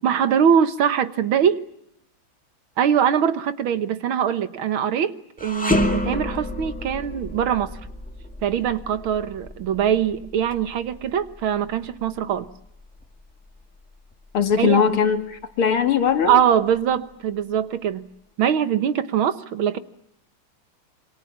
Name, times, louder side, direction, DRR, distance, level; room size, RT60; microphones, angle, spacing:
voice 1, 0.0-1.6 2.8-7.8 8.4-12.5 14.6-14.8 16.3-18.1 18.4-19.8, right 8 dB, 75° right, 2.0 m, -22 dB
sound 1, 5.4-14.6 15.0-15.2 16.1-17.0, left 1 dB, 5° left, 1.9 m, -30 dB
voice 2, 14.3-16.4, left 7 dB, 90° left, 2.8 m, -20 dB
28.0 x 24.5 x 7.3 m
omnidirectional pair, 2.3 m